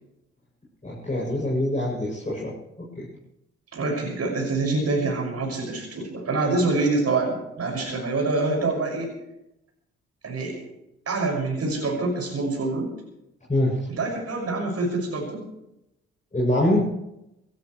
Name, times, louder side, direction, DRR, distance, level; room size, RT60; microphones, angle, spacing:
voice 1, 0.8-3.0 13.5-13.9 16.3-16.8, left 1 dB, 20° left, -5 dB, 7.7 m, -24 dB
voice 2, 3.7-9.1 10.2-10.6 11.1-12.9 13.9-15.5, right 3 dB, 45° right, 0 dB, 6.5 m, -26 dB
21.0 x 18.5 x 3.3 m, 0.86 s
figure-of-eight pair, 40°, 34 cm